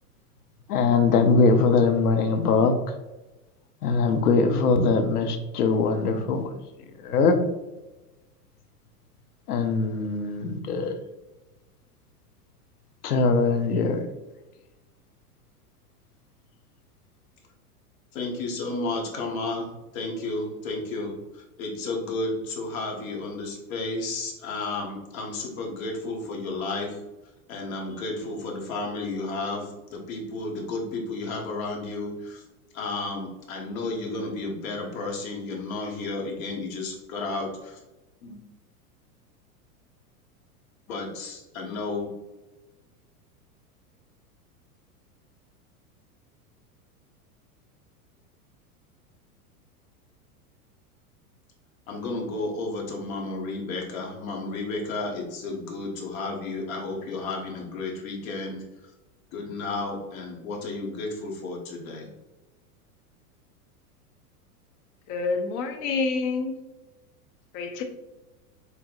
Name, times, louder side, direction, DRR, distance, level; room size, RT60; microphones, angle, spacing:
voice 1, 0.7-2.7 3.8-6.5 7.0-7.4 9.5-10.9 13.0-14.1, left 4 dB, 80° left, 7 dB, 0.8 m, -21 dB
voice 2, 18.1-27.0 27.5-32.4 32.7-37.8 38.2-38.4 40.9-42.1 51.9-58.9 59.3-62.1, left 2 dB, 65° left, 0 dB, 1.4 m, -32 dB
voice 3, 65.1-66.6 67.5-67.8, left 4 dB, 40° left, 6 dB, 0.7 m, -27 dB
4.8 x 3.4 x 2.5 m, 1.0 s
hypercardioid pair, 100°, 45 cm